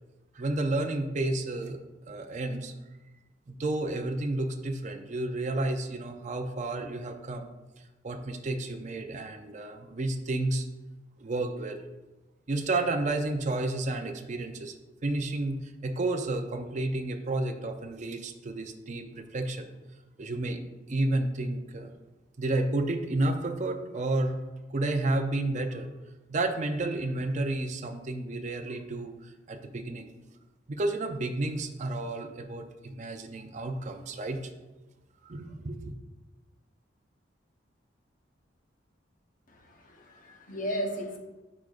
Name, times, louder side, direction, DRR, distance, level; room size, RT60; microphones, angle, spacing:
voice 1, 0.3-1.8 2.1-2.7 3.5-7.5 8.0-10.7 11.2-11.8 12.5-14.7 15.0-19.7 20.2-20.6 20.9-21.9 22.4-24.4 24.7-25.9 26.3-30.1 30.7-34.5 35.2-36.0, right 2 dB, 40° right, 5 dB, 0.5 m, -31 dB
voice 2, 39.5-41.2, equal, 45° left, 1 dB, 1.0 m, -35 dB
10.0 x 4.8 x 2.5 m, 1.1 s
head